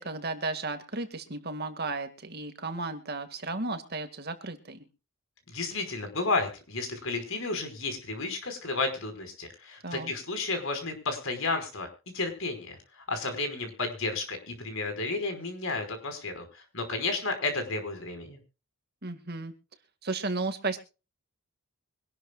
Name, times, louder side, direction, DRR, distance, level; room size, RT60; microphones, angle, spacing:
voice 1, 0.0-4.9 9.8-10.1 19.0-19.5 20.0-20.8, right 3 dB, 45° right, 8 dB, 2.0 m, -34 dB
voice 2, 5.5-11.9 12.1-18.4, left 3 dB, 60° left, 7 dB, 5.3 m, -32 dB
24.5 x 12.0 x 2.4 m, 0.32 s
head